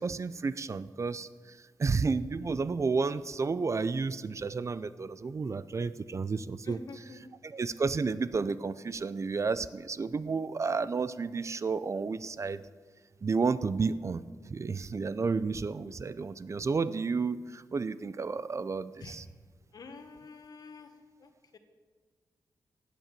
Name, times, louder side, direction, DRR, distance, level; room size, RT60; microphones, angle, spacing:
voice 1, 0.0-6.8 7.4-12.6 13.2-19.3, right 4 dB, 45° right, 15 dB, 0.5 m, -31 dB
voice 2, 6.7-7.2 19.0-19.1 19.7-20.9 21.2-21.6, left 4 dB, 65° left, 7 dB, 1.6 m, -47 dB
16.0 x 8.4 x 7.5 m, 1.5 s
cardioid pair, 80°, 7 cm